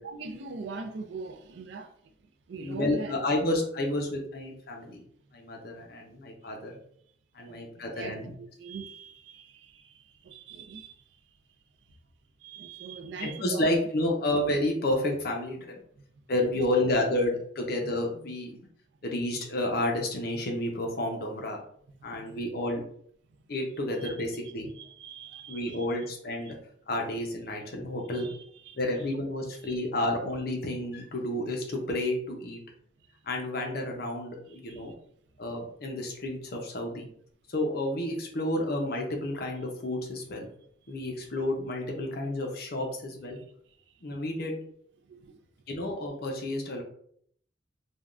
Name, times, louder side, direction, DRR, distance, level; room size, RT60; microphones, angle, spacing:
voice 1, 0.0-1.9 2.5-3.2 5.8-5.9 7.4-11.0 12.4-13.7 16.5-16.9 22.2-22.4 24.0-24.1 24.7-25.9 26.5-26.6 28.1-28.8 29.6-29.8 34.5-34.9 43.3-43.4 45.1-45.4, right 4 dB, 65° right, 6 dB, 0.4 m, -42 dB
voice 2, 2.6-5.0 5.3-6.8 7.3-8.3 13.2-15.7 16.3-18.6 19.0-21.6 22.0-22.8 23.5-24.7 25.5-26.6 26.9-28.3 28.8-32.6 33.3-34.9 35.4-37.1 37.5-40.5 40.9-43.4 44.0-44.6 45.7-46.8, left 1 dB, 55° left, 1 dB, 0.6 m, -30 dB
3.3 x 2.2 x 2.4 m, 0.64 s
head